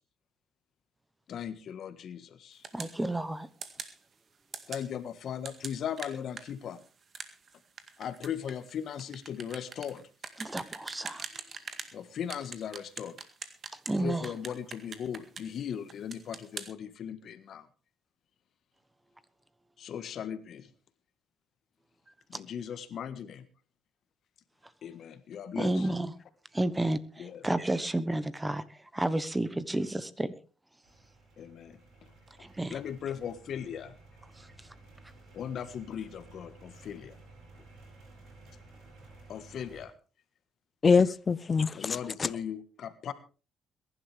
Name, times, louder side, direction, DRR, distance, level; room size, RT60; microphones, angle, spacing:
voice 1, 1.3-2.6 4.7-6.8 8.0-10.0 11.9-13.2 14.0-17.7 19.8-20.7 22.3-23.5 24.8-25.9 27.2-27.4 31.4-31.8 32.7-33.9 35.3-37.2 39.3-39.9 41.7-43.1, left 8 dB, 65° left, 1.5 m, -38 dB
sound 1, 2.6-3.0 3.6-4.0 4.5-4.9 5.4-11.9 12.3-14.0 14.2-15.6 15.9-16.7, right 5 dB, 50° right, 1.9 m, -42 dB
voice 2, 2.7-3.5 10.4-11.3 13.9-14.3 22.3-22.4 25.5-26.1 26.5-30.3 32.4-32.8 34.4-34.5, right 1 dB, 15° right, 1.1 m, -31 dB
sound 2, 30.8-39.8, right 2 dB, 80° right, 7.8 m, -54 dB
voice 3, 40.8-42.3, left 5 dB, 35° left, 0.7 m, -24 dB
22.0 x 11.5 x 3.5 m
cardioid pair, 90°, 0 cm